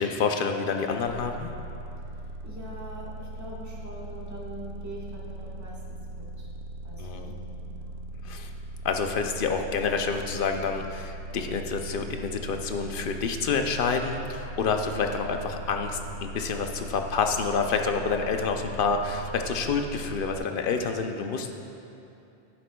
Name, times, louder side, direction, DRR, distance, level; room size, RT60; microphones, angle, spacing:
voice 1, 0.0-1.5 7.0-7.3 8.2-8.5 8.8-21.5, left 5 dB, 60° left, 5 dB, 0.7 m, -28 dB
sound 1, 1.1-20.4, right 2 dB, 70° right, 0.7 m, -39 dB
voice 2, 2.1-6.5 6.8-8.0, equal, 15° right, -5 dB, 1.2 m, -43 dB
10.0 x 9.2 x 2.3 m, 2.7 s
omnidirectional pair, 1.1 m